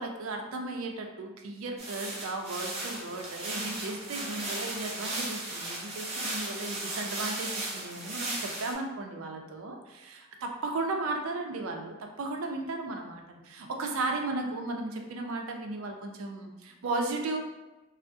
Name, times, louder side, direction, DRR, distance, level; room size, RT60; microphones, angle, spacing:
voice 1, 0.0-17.4, right 2 dB, 85° right, 3 dB, 0.5 m, -35 dB
sound 1, 1.8-8.7, right 2 dB, 30° right, 0.6 m, -36 dB
3.3 x 2.1 x 2.6 m, 1.1 s
head